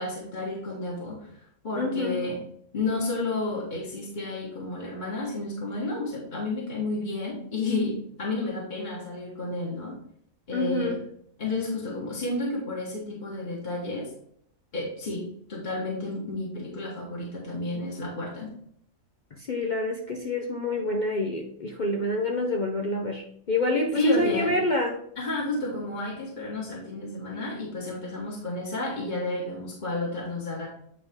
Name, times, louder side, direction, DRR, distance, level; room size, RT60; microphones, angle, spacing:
voice 1, 0.0-2.4 2.7-10.0 10.5-11.0 11.4-14.1 14.7-18.5 23.9-24.5 25.2-30.7, left 2 dB, 30° left, 1.3 m, -31 dB
voice 2, 1.8-2.2 10.5-11.0 19.4-25.0, left 2 dB, 55° left, 0.5 m, -27 dB
8.7 x 4.0 x 3.6 m
omnidirectional pair, 1.6 m